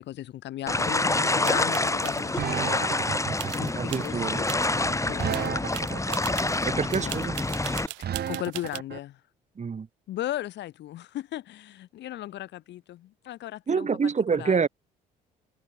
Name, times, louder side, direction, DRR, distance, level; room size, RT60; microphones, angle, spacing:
voice 1, 0.0-5.9 6.2-7.3 8.0-9.2 10.1-14.6, left 13 dB, 65° left, 5.1 m, -37 dB
sound 1, 0.7-7.9, left 2 dB, 15° left, 7.6 m, -27 dB
sound 2, 0.8-9.0, right 9 dB, 55° right, 6.1 m, -34 dB
sound 3, 1.4-2.2 3.4-4.1 4.5-4.7 5.0-8.8, right 22 dB, 75° right, 5.0 m, -39 dB
voice 2, 3.8-4.4 6.6-7.3 9.6-9.9 13.7-14.7, right 5 dB, 40° right, 3.4 m, -26 dB
hypercardioid pair, 55°, 19 cm